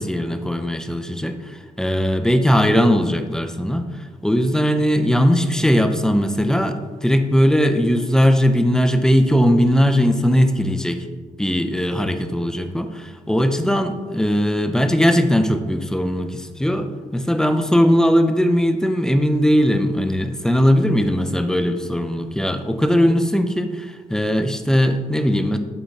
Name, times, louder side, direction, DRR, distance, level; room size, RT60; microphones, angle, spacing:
voice 1, 0.0-3.8 4.2-11.1 11.4-25.6, equal, 5° left, 8 dB, 0.5 m, -19 dB
8.4 x 3.6 x 4.1 m, 1.4 s
cardioid pair, 110°, 14 cm